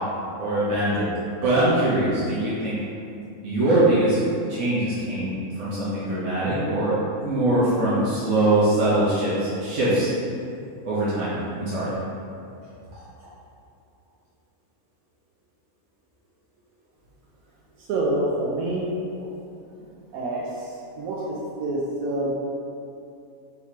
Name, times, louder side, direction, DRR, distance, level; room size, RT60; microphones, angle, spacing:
voice 1, 0.4-1.1 1.4-2.8 3.4-4.2 4.5-7.0 7.2-10.1 10.8-11.9, right 1 dB, 60° right, -11 dB, 1.3 m, -22 dB
voice 2, 17.9-18.8 20.1-20.4 21.0-21.2 21.6-22.3, right 2 dB, 85° right, -5 dB, 1.1 m, -26 dB
4.1 x 2.9 x 4.5 m, 2.6 s
omnidirectional pair, 1.5 m